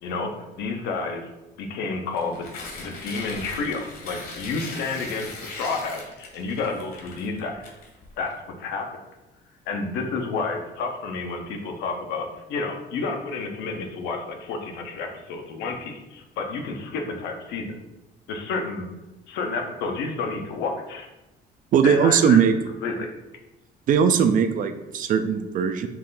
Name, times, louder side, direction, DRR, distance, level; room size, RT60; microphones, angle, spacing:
voice 1, 0.0-1.3 1.6-7.6 8.2-9.0 9.7-17.8 18.3-18.9 19.3-21.1 21.8-22.4 22.8-23.1, left 4 dB, 85° left, 3 dB, 0.7 m, -30 dB
Tearing, 2.1-8.3, left 3 dB, 60° left, 1.1 m, -39 dB
voice 2, 21.7-22.5 23.9-25.9, right 7 dB, 55° right, 9 dB, 0.4 m, -19 dB
4.5 x 2.5 x 3.7 m, 0.99 s
cardioid pair, 110°, 17 cm